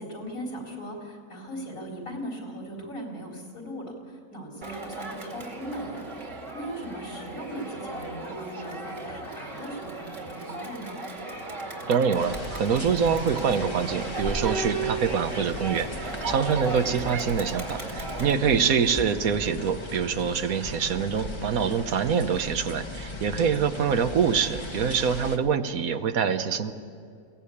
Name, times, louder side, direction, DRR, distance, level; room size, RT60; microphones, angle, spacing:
voice 1, 0.0-11.0 18.4-18.6 23.5-24.0, equal, 70° left, 0 dB, 4.4 m, -39 dB
Crowd, 4.6-18.3, right 3 dB, 55° right, 2.7 m, -36 dB
voice 2, 11.9-26.7, right 6 dB, 75° right, 9 dB, 1.4 m, -25 dB
sound 1, 12.1-25.4, left 1 dB, 20° left, 1.2 m, -37 dB
21.5 x 17.5 x 8.5 m, 2.4 s
omnidirectional pair, 1.5 m